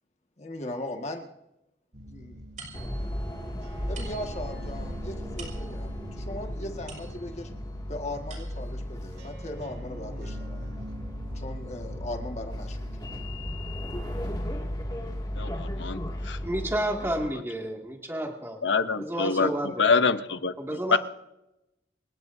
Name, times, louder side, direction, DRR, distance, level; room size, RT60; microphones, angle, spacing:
voice 1, 0.4-1.3 2.1-2.4 3.9-5.9 6.2-7.5 7.9-10.6 11.4-12.8, left 1 dB, 40° left, 1.8 m, -38 dB
sound 1, 1.9-14.6, equal, 85° right, 3.1 m, -45 dB
sound 2, 2.6-7.6 8.0-8.9, right 4 dB, 45° right, 5.5 m, -49 dB
sound 3, 2.7-17.3, equal, 25° left, 2.3 m, -35 dB
voice 2, 15.4-16.0 16.2-16.4 18.6-20.5 20.9-21.0, left 5 dB, 85° left, 0.8 m, -25 dB
voice 3, 16.4-18.6 18.9-20.1 20.6-21.0, right 1 dB, 15° right, 2.2 m, -31 dB
28.5 x 16.5 x 2.7 m
head